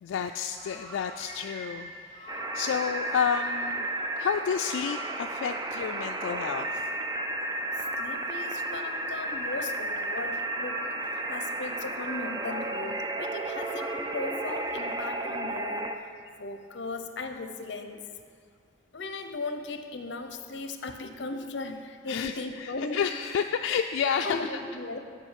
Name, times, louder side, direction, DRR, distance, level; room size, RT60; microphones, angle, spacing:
voice 1, 0.0-3.9 4.2-6.9 22.1-24.6, left 7 dB, 85° left, 6 dB, 0.3 m, -30 dB
sound 1, 0.5-9.8 10.1-15.2, right 1 dB, 85° right, 1.7 m, -45 dB
sound 2, 2.3-16.0, right 2 dB, 20° right, 0.4 m, -33 dB
voice 2, 7.7-10.8 11.1-16.0 16.4-18.0 18.9-23.0 24.2-25.0, left 3 dB, 65° left, 7 dB, 0.7 m, -37 dB
8.2 x 5.4 x 7.4 m, 2.2 s
head